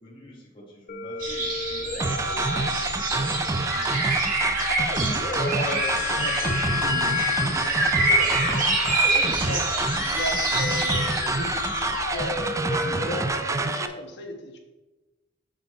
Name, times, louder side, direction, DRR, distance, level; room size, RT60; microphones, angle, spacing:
voice 1, 0.0-4.1, equal, 30° left, -5 dB, 1.8 m, -46 dB
sound 1, 0.9-13.9, left 4 dB, 45° left, 0.8 m, -32 dB
sound 2, 1.2-12.4, right 2 dB, 50° right, 1.7 m, -27 dB
sound 3, 2.0-13.9, right 3 dB, 15° right, 0.3 m, -27 dB
voice 2, 5.3-8.6 9.1-14.6, left 1 dB, 65° left, 3 dB, 1.2 m, -36 dB
6.9 x 5.9 x 4.3 m, 1.2 s
head